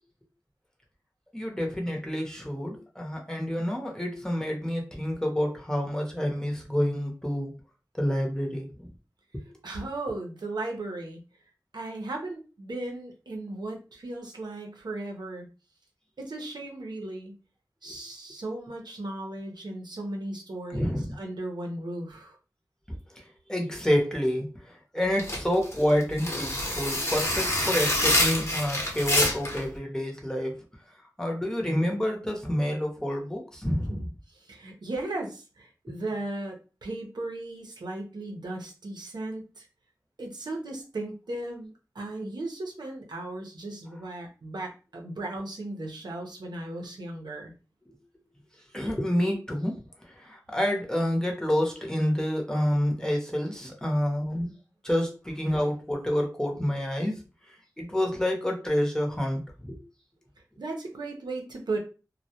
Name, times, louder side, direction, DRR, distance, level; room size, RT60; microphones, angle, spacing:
voice 1, 1.3-7.5 8.0-8.9 9.3-9.4 17.9-18.0 20.7-21.1 23.2-30.6 31.2-34.1 35.9-36.0 47.9-48.0 48.7-54.5 54.8-57.2 57.8-59.8, equal, 10° left, 0 dB, 0.7 m, -28 dB
voice 2, 9.6-11.2 11.7-15.5 16.2-17.4 17.8-22.4 33.9-34.1 34.3-39.7 40.2-47.5 60.6-61.8, right 2 dB, 80° right, 1 dB, 0.6 m, -36 dB
sound 1, 25.1-29.6, left 1 dB, 40° left, 0.8 m, -26 dB
2.2 x 2.1 x 2.7 m, 0.33 s
wide cardioid pair, 50°, 7 cm